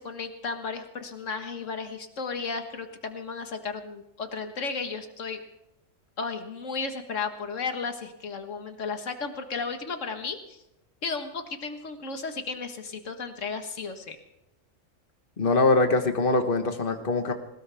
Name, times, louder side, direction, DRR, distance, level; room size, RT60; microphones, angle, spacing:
voice 1, 0.0-5.4 6.2-10.6 11.0-14.2, left 4 dB, 70° left, 6 dB, 1.9 m, -34 dB
voice 2, 15.4-17.3, left 3 dB, 45° left, 6 dB, 1.6 m, -23 dB
21.5 x 19.5 x 3.5 m, 0.87 s
omnidirectional pair, 1.3 m